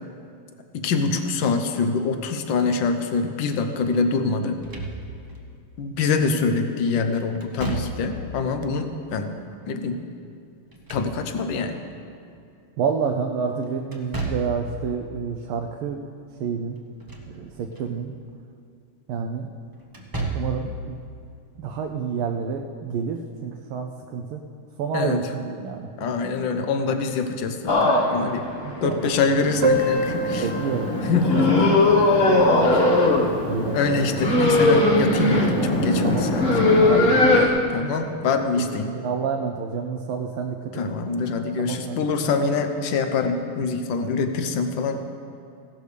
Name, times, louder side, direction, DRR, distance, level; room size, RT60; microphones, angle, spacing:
voice 1, 0.7-4.6 5.8-9.3 9.7-10.0 10.9-11.8 24.9-25.2 26.0-28.5 28.8-30.5 31.0-31.8 32.7-32.9 33.7-36.6 37.7-38.9 40.7-45.0, left 4 dB, 65° left, 7 dB, 1.4 m, -25 dB
Slam / Thump thud, 4.5-5.4 7.4-8.3 10.5-11.6 13.9-14.7 16.8-17.4 17.8-17.9 19.9-20.7, right 2 dB, 20° right, 0.5 m, -32 dB
voice 2, 12.8-16.1 16.4-16.8 17.3-18.1 19.1-19.5 20.3-21.0 21.6-24.4 24.8-26.1 26.6-27.0 28.6-29.1 30.3-31.4 33.5-34.0 35.5-35.7 36.0-36.2 36.8-37.4 38.9-40.7 41.6-42.0 42.4-42.5, right 6 dB, 80° right, 3 dB, 1.5 m, -29 dB
sound 1, 27.7-37.5, left 2 dB, 35° left, 1.1 m, -20 dB
Piano, 29.6-35.0 35.2-35.3 35.6-35.7 36.0-36.1 36.9-37.1, right 1 dB, 60° right, 1.4 m, -29 dB
16.0 x 12.0 x 3.3 m, 2.4 s
omnidirectional pair, 2.4 m